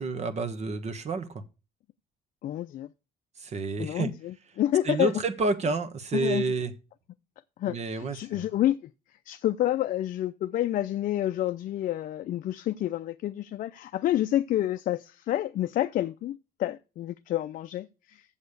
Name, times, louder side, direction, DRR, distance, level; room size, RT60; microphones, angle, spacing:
voice 1, 0.0-1.4 3.4-4.1 4.8-6.7 7.6-8.5, right 3 dB, 40° right, 1.2 m, -29 dB
voice 2, 2.4-2.9 3.8-5.1 6.1-6.4 7.6-8.7 9.3-18.2, left 13 dB, 55° left, 0.5 m, -29 dB
7.2 x 6.7 x 6.6 m
cardioid pair, 110°, 17 cm